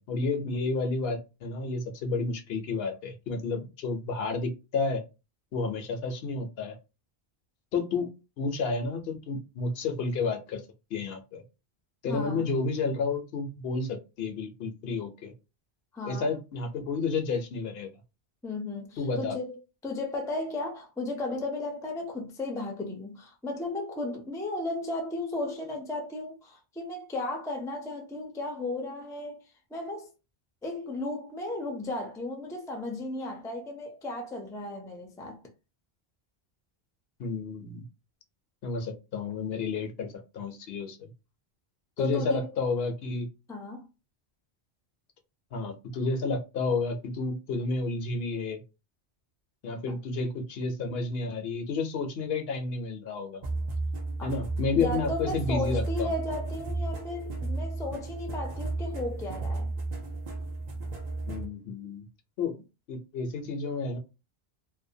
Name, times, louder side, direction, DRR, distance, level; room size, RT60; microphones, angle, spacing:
voice 1, 0.0-5.0 5.5-6.8 7.7-8.1 8.4-10.6 10.9-11.4 12.0-15.3 16.0-17.9 19.0-19.4 37.2-37.8 38.6-41.1 42.0-43.3 45.5-48.6 49.6-53.4 54.2-56.1 61.3-62.1 62.4-62.6 62.9-64.0, left 3 dB, 70° left, 0.8 m, -31 dB
voice 2, 12.1-12.4 15.9-16.3 18.4-19.6 19.8-29.4 29.7-30.1 30.6-35.4 42.0-42.5 43.5-43.9 49.9-50.0 54.2-54.4 54.8-59.7, left 2 dB, 5° left, 0.3 m, -35 dB
sound 1, 53.4-61.5, right 2 dB, 50° right, 0.6 m, -33 dB
2.6 x 2.2 x 2.6 m
omnidirectional pair, 1.1 m